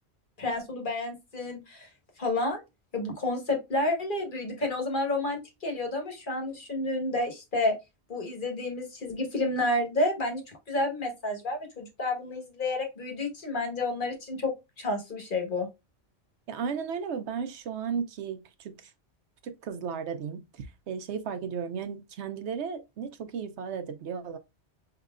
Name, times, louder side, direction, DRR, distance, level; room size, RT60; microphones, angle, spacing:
voice 1, 0.4-1.9 2.2-2.6 2.9-7.7 8.1-10.4 10.7-15.7, left 2 dB, 50° left, 1.5 m, -30 dB
voice 2, 16.5-18.9 19.4-24.4, right 6 dB, 85° right, 1.0 m, -35 dB
5.6 x 2.9 x 2.4 m
omnidirectional pair, 1.1 m